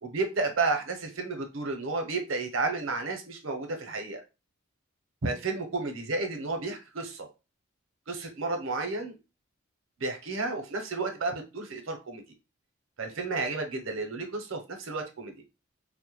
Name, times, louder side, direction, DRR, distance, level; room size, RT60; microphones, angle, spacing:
voice 1, 0.0-4.2 5.2-7.3 8.1-9.2 10.0-12.2 13.0-15.3, right 3 dB, 75° right, 5 dB, 0.6 m, -32 dB
2.1 x 2.1 x 3.0 m, 0.28 s
head